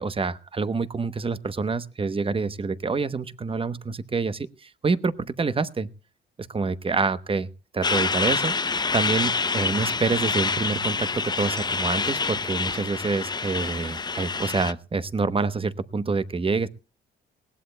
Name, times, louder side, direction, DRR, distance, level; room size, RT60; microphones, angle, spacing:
voice 1, 0.0-5.9 6.5-7.5 7.7-8.5 8.9-16.7, right 4 dB, 25° right, 14 dB, 0.9 m, -27 dB
Truck, 7.8-14.7, left 4 dB, 20° left, 0.6 m, -27 dB
20.0 x 17.0 x 2.2 m, 0.33 s
cardioid pair, 90°, 20 cm